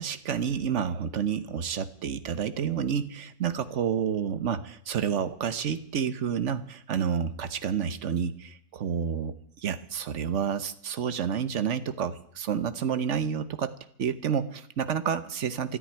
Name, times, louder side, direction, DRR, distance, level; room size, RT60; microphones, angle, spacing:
voice 1, 0.0-9.3 9.6-13.7 14.0-15.8, right 7 dB, 55° right, 13 dB, 1.1 m, -29 dB
14.0 x 9.8 x 9.9 m, 0.67 s
omnidirectional pair, 1.7 m